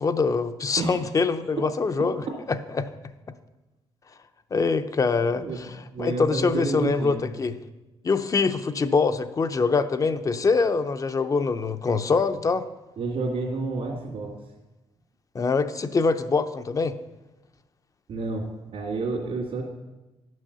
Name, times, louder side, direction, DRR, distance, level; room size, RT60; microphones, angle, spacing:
voice 1, 0.0-2.2 2.5-2.9 4.5-7.6 8.0-12.7 15.3-16.9, left 4 dB, 35° left, 10 dB, 0.6 m, -24 dB
voice 2, 2.0-2.4 5.4-7.3 13.0-14.3 18.1-19.6, right 3 dB, 70° right, -4 dB, 2.1 m, -30 dB
11.0 x 6.3 x 6.7 m, 1.1 s
cardioid pair, 120°, 10 cm